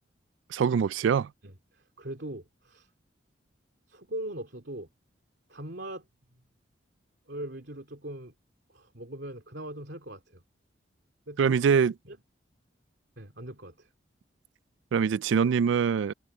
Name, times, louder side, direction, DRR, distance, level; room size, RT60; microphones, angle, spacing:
voice 1, 0.5-1.3 11.4-11.9 14.9-16.1, right 6 dB, 80° right, 0.3 m, -24 dB
voice 2, 1.4-2.9 3.9-4.9 5.5-6.0 7.3-8.3 8.7-10.4 11.3-11.6 12.1-12.2 13.2-13.9, right 1 dB, 65° right, 2.7 m, -40 dB
head